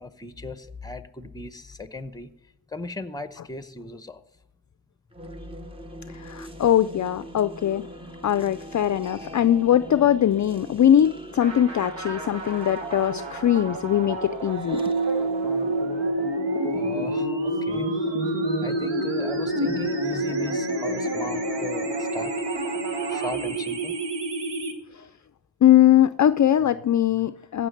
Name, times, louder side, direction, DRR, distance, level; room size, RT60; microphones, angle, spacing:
voice 1, 0.0-2.3 2.7-4.2 16.7-18.0 18.3-22.3 23.1-24.0, left 2 dB, 10° left, 12 dB, 0.8 m, -37 dB
sound 1, 5.1-17.3, right 1 dB, 10° right, 1.0 m, -43 dB
voice 2, 6.1-7.9 8.2-14.8 24.9-25.1 25.6-27.7, left 11 dB, 45° left, 13 dB, 0.4 m, -21 dB
sound 2, 11.4-23.9, right 1 dB, 90° right, 2.3 m, -33 dB
sound 3, 14.7-24.7, right 1 dB, 70° right, 1.8 m, -28 dB
15.5 x 6.1 x 6.5 m, 0.89 s
cardioid pair, 90°, 44 cm